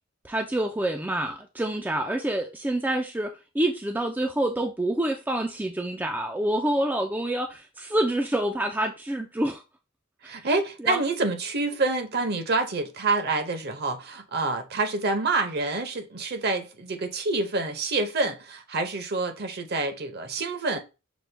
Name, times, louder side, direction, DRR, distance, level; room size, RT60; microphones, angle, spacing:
voice 1, 0.2-9.6 10.3-10.4 10.8-11.0, right 1 dB, 10° right, 0.3 m, -27 dB
voice 2, 10.3-20.8, right 3 dB, 50° right, 0.8 m, -27 dB
6.1 x 2.2 x 3.3 m
head